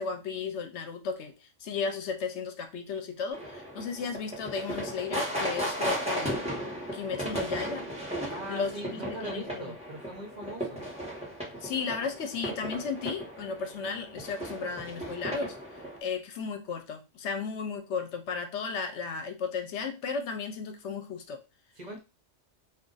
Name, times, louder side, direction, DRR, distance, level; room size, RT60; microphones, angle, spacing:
voice 1, 0.0-6.5 6.9-7.9 8.5-9.7 11.6-15.5 16.0-21.4, left 5 dB, 75° left, 7 dB, 0.9 m, -34 dB
sound 1, 3.3-16.0, equal, 5° right, 1.1 m, -36 dB
voice 2, 8.3-10.9 21.8-22.0, right 1 dB, 40° right, 1 dB, 0.9 m, -40 dB
2.4 x 2.4 x 3.8 m, 0.28 s
omnidirectional pair, 1.2 m